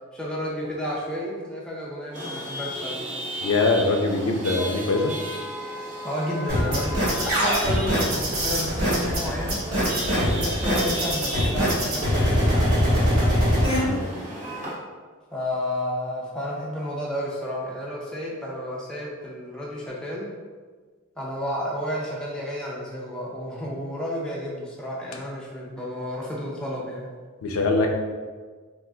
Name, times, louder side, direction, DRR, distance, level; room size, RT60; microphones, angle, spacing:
voice 1, 0.1-3.0 6.0-9.6 10.2-13.1 15.3-20.3 21.2-27.1, equal, 5° left, -5 dB, 0.4 m, -31 dB
Chatter / Vehicle horn car horn honking / Traffic noise roadway noise, 2.1-14.7, right 1 dB, 35° right, 0.7 m, -35 dB
voice 2, 3.4-5.2 13.8-14.0 27.4-27.9, left 3 dB, 85° left, 3 dB, 0.4 m, -22 dB
sound 1, 6.5-13.8, equal, 85° right, 1.3 m, -22 dB
3.7 x 2.4 x 2.3 m, 1.5 s
head